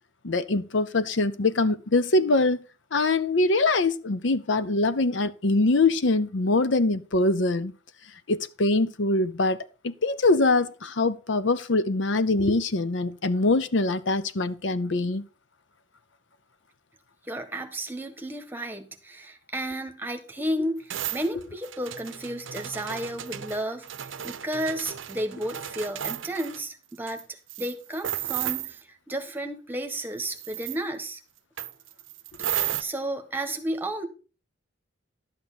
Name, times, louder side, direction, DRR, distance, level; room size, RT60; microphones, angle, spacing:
voice 1, 0.2-2.6 2.9-7.7 8.3-9.6 9.8-15.2, left 2 dB, 70° left, 0.7 m, -23 dB
voice 2, 17.3-31.2 32.4-34.1, right 1 dB, 10° right, 1.3 m, -33 dB
sound 1, 20.9-26.6 27.1-27.2 27.5-28.8 30.3-30.8 31.6-32.8, right 11 dB, 75° right, 0.7 m, -34 dB
12.0 x 8.3 x 4.1 m
head